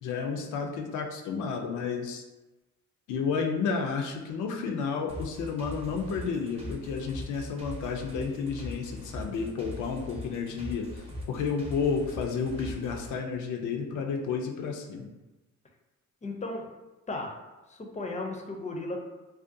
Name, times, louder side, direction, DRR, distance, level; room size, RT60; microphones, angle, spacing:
voice 1, 0.0-2.2 3.1-15.1, left 5 dB, 75° left, 3 dB, 0.5 m, -31 dB
sound 1, 5.1-13.1, left 1 dB, 20° right, 0.6 m, -40 dB
voice 2, 16.2-16.7 17.1-17.3 17.7-19.0, left 2 dB, 25° left, 1 dB, 0.4 m, -35 dB
2.4 x 2.2 x 2.5 m, 1.1 s
cardioid pair, 90°, 30 cm